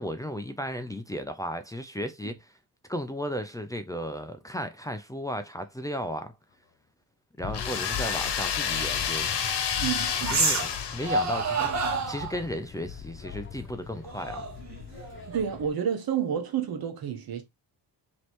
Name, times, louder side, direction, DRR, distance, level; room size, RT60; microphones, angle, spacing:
voice 1, 0.0-2.6 2.9-6.3 7.4-9.4 10.3-11.7 12.1-14.5, equal, 10° left, 0.3 m, -35 dB
sound 1, 7.4-15.7, left 8 dB, 30° left, 0.8 m, -41 dB
sound 2, 7.5-11.6, left 7 dB, 70° left, 1.0 m, -30 dB
sound 3, 8.5-8.6 10.2-10.8 11.0-12.4 14.0-15.6, right 3 dB, 40° right, 0.9 m, -29 dB
voice 2, 9.8-10.5 15.3-17.4, right 8 dB, 55° right, 1.1 m, -30 dB
3.2 x 3.0 x 4.2 m
cardioid pair, 145°, 43 cm